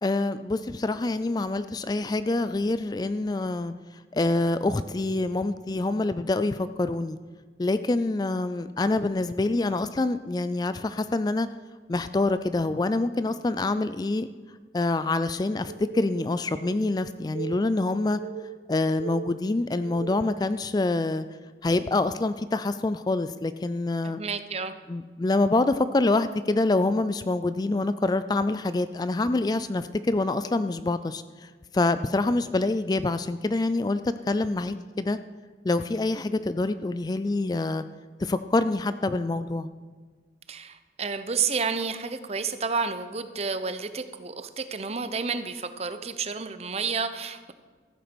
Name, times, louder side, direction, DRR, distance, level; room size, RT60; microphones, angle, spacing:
voice 1, 0.0-3.7 4.1-7.2 7.6-11.5 11.9-14.3 14.7-18.2 18.7-21.3 21.6-24.2 24.9-35.2 35.6-37.8 38.2-39.7, left 2 dB, 20° left, 13 dB, 0.3 m, -26 dB
sound 1, 15.7-20.5, right 8 dB, 70° right, 0.4 m, -39 dB
voice 2, 24.0-24.7 40.5-47.5, right 5 dB, 35° right, 10 dB, 0.7 m, -30 dB
14.5 x 8.3 x 6.1 m, 1.4 s
head